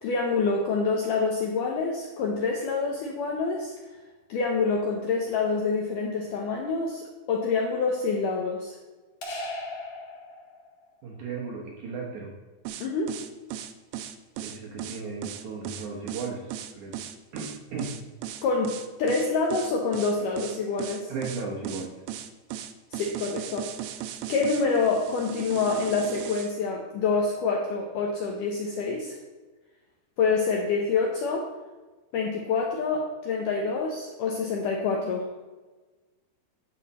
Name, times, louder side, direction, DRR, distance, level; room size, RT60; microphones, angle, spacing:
voice 1, 0.0-3.7 4.3-8.8 12.8-13.1 18.4-21.1 22.9-23.7 24.3-29.2 30.2-31.5 32.1-35.3, left 4 dB, 75° left, 0 dB, 1.9 m, -27 dB
sound 1, 9.2-10.9, left 1 dB, 55° left, 1.4 m, -37 dB
voice 2, 11.0-12.3 14.4-17.0 17.3-18.0 21.1-21.9, right 4 dB, 65° right, -2 dB, 2.0 m, -36 dB
sound 2, 12.7-26.5, right 11 dB, 85° right, 2.1 m, -37 dB
10.5 x 6.9 x 4.2 m, 1.2 s
omnidirectional pair, 4.8 m